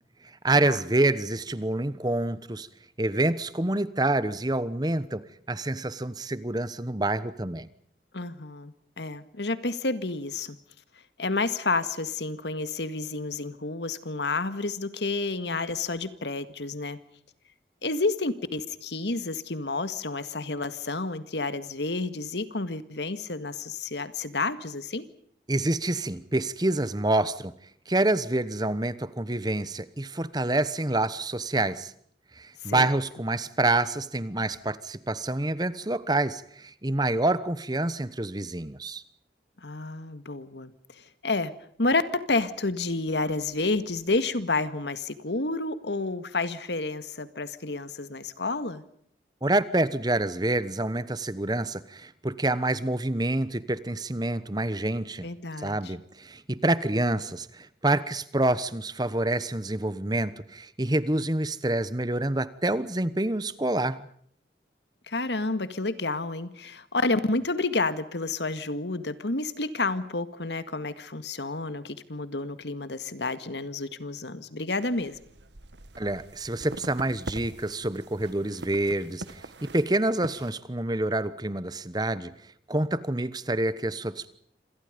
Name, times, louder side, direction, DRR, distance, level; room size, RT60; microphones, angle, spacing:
voice 1, 0.4-2.7 3.0-7.7 25.5-27.5 27.9-31.9 32.4-39.0 49.4-55.3 55.6-64.1 76.0-82.3 82.7-84.3, right 2 dB, 25° right, 16 dB, 1.1 m, -27 dB
voice 2, 8.1-10.6 11.2-17.0 17.8-25.1 32.6-32.9 39.6-41.5 41.8-48.8 55.2-55.9 65.1-75.2, left 3 dB, 80° left, 12 dB, 1.9 m, -30 dB
sound 1, 74.8-80.5, right 2 dB, 85° right, 1.7 m, -43 dB
27.5 x 27.0 x 5.2 m, 0.63 s
head